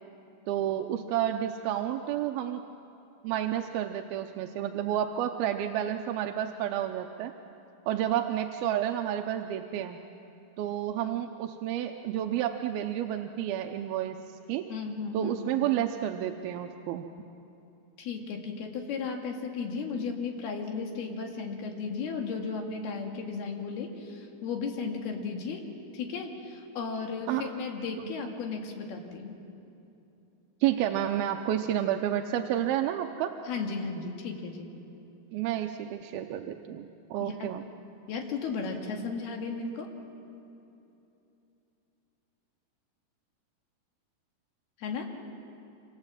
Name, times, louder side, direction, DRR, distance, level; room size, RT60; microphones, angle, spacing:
voice 1, 0.5-2.6 3.2-7.3 7.9-10.0 10.6-14.2 14.5-14.7 15.1-17.1 27.3-27.5 28.0-28.1 30.6-33.3 35.3-37.6, right 11 dB, 75° right, 4 dB, 2.4 m, -30 dB
voice 2, 14.7-15.7 18.0-25.6 25.9-29.4 33.5-34.7 37.2-37.5 38.1-39.9 44.8-45.1, left 4 dB, 65° left, 2 dB, 3.9 m, -35 dB
26.5 x 26.5 x 7.5 m, 2.8 s
omnidirectional pair, 4.9 m